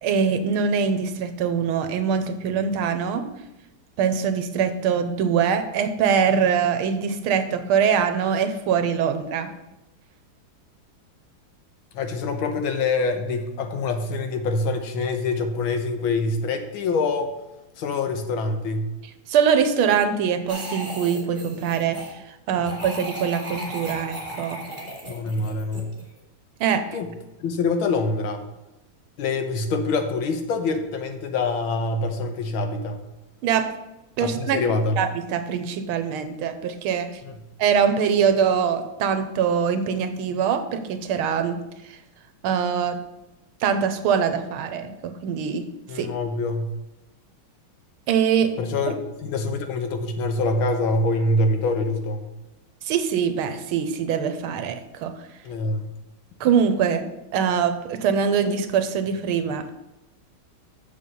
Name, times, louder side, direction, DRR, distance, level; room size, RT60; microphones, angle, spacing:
voice 1, 0.0-3.3 4.0-9.5 19.3-24.6 26.6-27.0 33.4-33.7 34.2-34.6 35.0-37.1 37.6-41.6 41.9-42.0 42.4-43.0 43.6-45.7 45.9-46.1 48.1-48.5 48.9-49.0 52.8-55.2 56.4-57.1 57.3-59.7, right 7 dB, 90° right, 9 dB, 1.6 m, -23 dB
voice 2, 11.9-17.3 17.8-18.9 22.5-22.6 25.1-25.9 26.9-27.1 27.4-28.4 29.2-33.0 34.2-35.0 37.2-37.3 45.9-46.7 48.6-48.9 49.2-52.3 55.4-55.9, left 3 dB, 75° left, 6 dB, 1.7 m, -25 dB
sound 1, 20.5-22.1 22.6-26.2, right 1 dB, 15° right, 2.1 m, -36 dB
7.0 x 6.9 x 5.3 m, 0.97 s
omnidirectional pair, 2.3 m